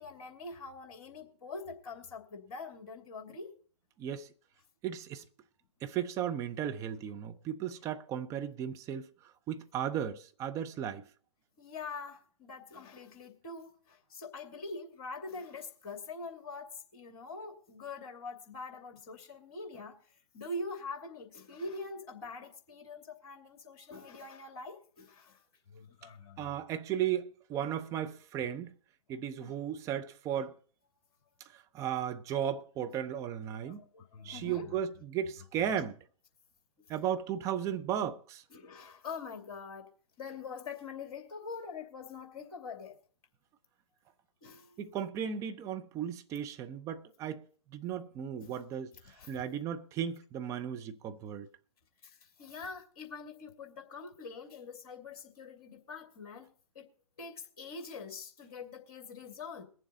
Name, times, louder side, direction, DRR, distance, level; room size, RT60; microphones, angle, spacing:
voice 1, 0.0-3.5 11.6-20.0 20.3-25.4 25.7-26.4 29.4-29.6 33.6-34.8 38.5-39.9 40.2-43.0 44.4-44.8 48.4-48.6 49.1-49.3 52.0-56.9 57.2-59.6, left 3 dB, 40° left, 2.7 m, -44 dB
voice 2, 4.0-4.3 4.8-5.2 5.8-9.1 9.5-11.1 26.4-28.7 29.1-30.5 31.5-33.8 34.2-36.0 36.9-38.4 44.8-48.9 49.3-51.5, right 9 dB, 15° right, 0.7 m, -35 dB
21.5 x 7.3 x 4.0 m
figure-of-eight pair, 125°, 18 cm